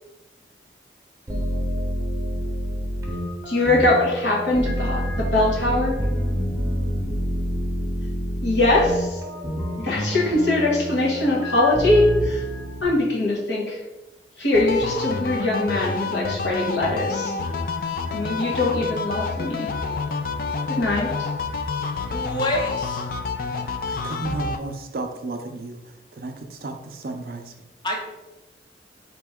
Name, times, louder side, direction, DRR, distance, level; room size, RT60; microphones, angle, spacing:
sound 1, 1.3-12.8, equal, 15° right, 0.7 m, -27 dB
voice 1, 3.5-6.0 8.4-9.2 9.8-12.4 12.8-13.8 14.4-17.3 18.1-19.7 20.7-21.3, left 2 dB, 85° left, -4 dB, 1.3 m, -22 dB
sound 2, 14.5-24.6, left 4 dB, 50° left, 0.3 m, -28 dB
voice 2, 22.1-23.0 27.8-28.0, left 1 dB, 25° left, 0 dB, 0.7 m, -27 dB
voice 3, 23.5-25.8 26.1-27.5, right 2 dB, 55° right, 5 dB, 0.5 m, -33 dB
4.3 x 2.9 x 3.5 m, 1.0 s
head